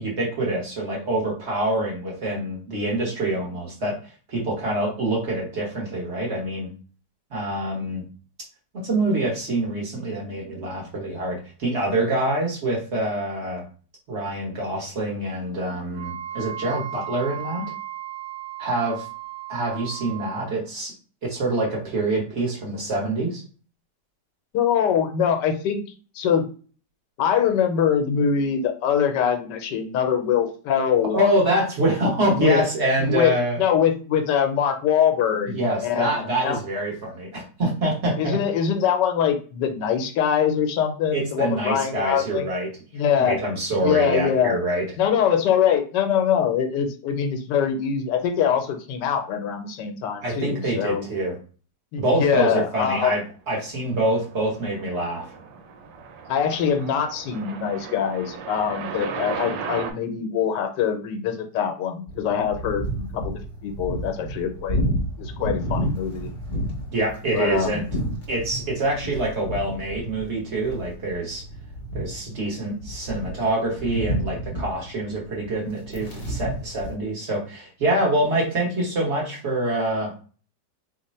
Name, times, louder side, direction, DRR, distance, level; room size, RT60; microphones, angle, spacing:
voice 1, 0.0-4.0 4.3-6.7 7.3-8.0 8.8-13.6 14.1-17.6 18.6-19.1 19.5-20.9 21.2-23.4 31.1-33.6 35.5-38.4 41.1-42.7 43.2-44.8 50.2-51.4 52.0-53.2 53.5-55.2 66.9-67.8 68.3-71.4 71.9-80.2, right 1 dB, 45° right, -2 dB, 1.2 m, -25 dB
Wind instrument woodwind instrument, 15.9-20.5, right 12 dB, 75° right, 0.7 m, -35 dB
voice 2, 24.5-25.8 26.1-26.5 27.2-31.3 32.3-32.6 33.0-36.6 38.2-42.5 42.9-43.4 43.8-44.6 45.0-51.0 51.9-53.1 56.3-64.8 65.2-66.3 67.3-67.9, left 8 dB, 80° left, 5 dB, 1.3 m, -23 dB
sound 1, 53.8-59.9, right 6 dB, 90° right, 1.3 m, -36 dB
sound 2, 62.1-76.9, right 1 dB, 45° left, 0.7 m, -31 dB
3.1 x 2.2 x 4.1 m, 0.38 s
omnidirectional pair, 1.9 m